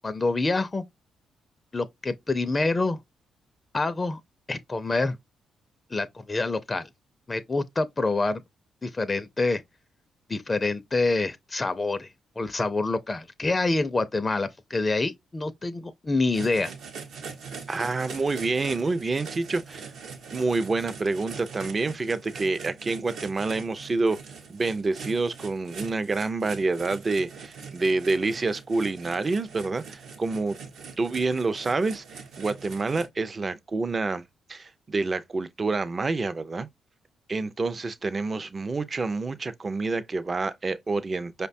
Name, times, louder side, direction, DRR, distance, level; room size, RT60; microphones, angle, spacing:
voice 1, 0.0-0.8 1.7-3.0 3.7-4.2 4.5-5.2 5.9-6.9 7.3-8.4 8.8-9.6 10.3-12.1 12.4-16.7, left 3 dB, 30° left, 0.4 m, -26 dB
sound 1, 16.3-33.1, right 5 dB, 75° right, 0.7 m, -42 dB
voice 2, 17.7-19.9 20.3-24.2 24.5-30.6 31.0-36.7 37.3-41.5, right 3 dB, 35° right, 0.4 m, -28 dB
5.0 x 2.2 x 2.5 m
supercardioid pair, 65°, 0 cm